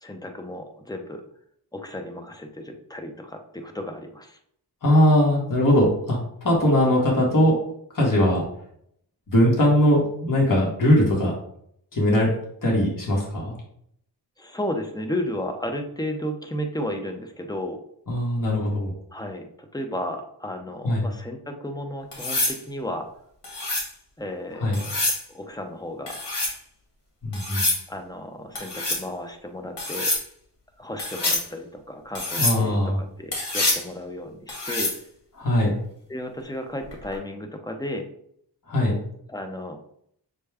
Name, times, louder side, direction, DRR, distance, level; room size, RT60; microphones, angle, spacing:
voice 1, 0.0-1.2 1.7-4.4 14.4-17.8 19.1-23.1 24.2-24.9 25.3-26.2 27.9-30.1 30.8-34.9 36.1-38.1 39.3-39.8, left 1 dB, 10° left, 4 dB, 0.6 m, -33 dB
voice 2, 4.8-7.5 7.9-8.4 9.3-11.3 11.9-12.3 12.6-13.5 18.1-18.9 20.8-21.1 24.6-24.8 27.2-27.6 32.4-33.0 35.4-35.8 38.7-38.9, left 1 dB, 50° left, -3 dB, 1.5 m, -20 dB
sound 1, 22.1-22.6 23.4-23.9 24.7-25.2 26.1-26.6 27.3-27.8 28.6-29.0 29.8-30.2 31.0-31.5 32.2-32.6 33.3-33.8 34.5-35.0 36.9-37.2, left 2 dB, 75° left, 1.8 m, -26 dB
6.5 x 2.2 x 3.4 m, 0.68 s
wide cardioid pair, 110°, 42 cm